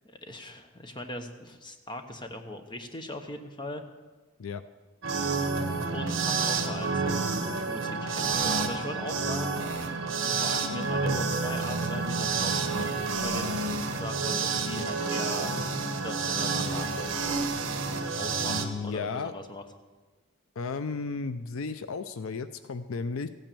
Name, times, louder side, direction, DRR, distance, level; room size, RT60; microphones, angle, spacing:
voice 1, 0.0-3.8 5.9-7.2 7.7-9.7 10.2-12.8 13.2-13.6 13.9-15.6 16.0-17.4 18.2-19.6, left 1 dB, 20° left, 6 dB, 1.0 m, -40 dB
sound 1, 5.0-18.7, right 4 dB, 60° right, 1.4 m, -29 dB
voice 2, 18.4-19.3 20.6-23.3, left 4 dB, 70° left, 12 dB, 0.5 m, -34 dB
15.0 x 9.0 x 6.9 m, 1.3 s
head